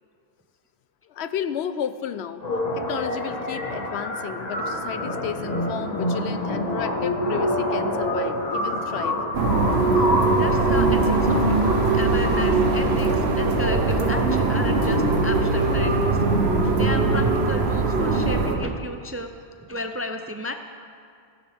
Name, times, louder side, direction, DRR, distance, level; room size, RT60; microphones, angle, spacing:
voice 1, 1.1-2.4 2.8-9.2, left 8 dB, 85° left, 12 dB, 0.9 m, -32 dB
sound 1, 2.4-16.4, left 1 dB, 40° left, 1.5 m, -27 dB
sound 2, 9.3-18.6, right 3 dB, 75° right, 1.2 m, -21 dB
voice 2, 10.3-11.6 11.9-16.1 16.6-19.3 19.6-20.5, left 1 dB, 25° right, 6 dB, 0.3 m, -33 dB
16.0 x 15.0 x 3.5 m, 2.3 s
omnidirectional pair, 1.1 m